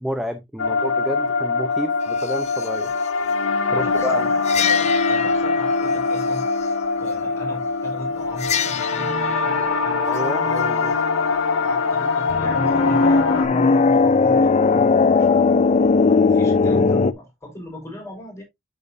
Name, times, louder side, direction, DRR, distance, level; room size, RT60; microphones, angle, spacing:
voice 1, 0.0-2.9 3.7-4.3 10.0-10.9, equal, ahead, 0.7 m, -30 dB
sound 1, 0.6-13.4, left 4 dB, 85° left, 1.5 m, -23 dB
voice 2, 3.7-6.4 7.0-10.1 11.5-15.5 16.1-18.4, equal, 15° left, 4.7 m, -36 dB
sound 2, 4.5-5.9 8.4-9.1 12.3-17.1, left 4 dB, 35° left, 0.4 m, -18 dB
8.3 x 6.7 x 2.7 m
head